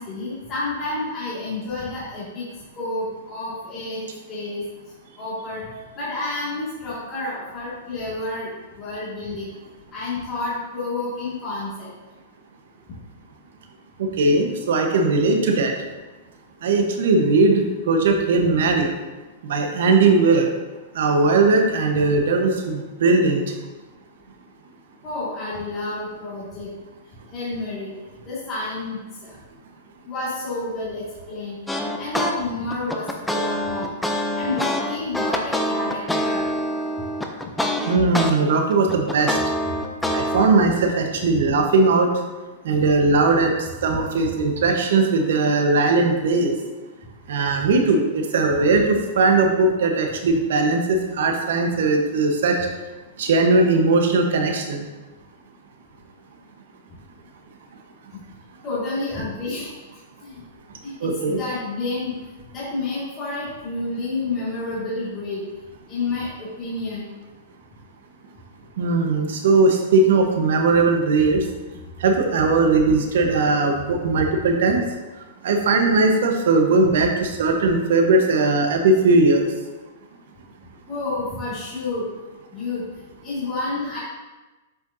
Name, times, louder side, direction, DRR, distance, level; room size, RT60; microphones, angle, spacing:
voice 1, 0.0-2.5 2.8-4.6 5.2-5.7 6.0-9.5 9.9-11.9 25.0-26.7 27.3-27.9 28.2-29.4 30.0-31.6 32.0-33.9 34.4-36.5 58.6-59.7 60.2-60.3 60.8-62.1 62.5-65.4 65.9-67.1 80.9-82.1 82.5-82.8 83.2-84.0, left 2 dB, 25° left, -10 dB, 2.1 m, -29 dB
voice 2, 14.0-15.7 16.6-18.9 19.4-20.5 20.9-23.4 37.9-39.4 40.1-42.1 42.6-46.5 47.3-52.6 53.2-54.9 61.0-61.4 68.8-71.4 72.0-74.8 75.4-79.4, right 3 dB, 75° right, 3 dB, 1.0 m, -19 dB
sound 1, 31.7-32.3 32.7-38.3 38.7-40.5, left 1 dB, 5° left, 0.5 m, -25 dB
7.7 x 5.0 x 2.7 m, 1.2 s
hypercardioid pair, 150°, 0 cm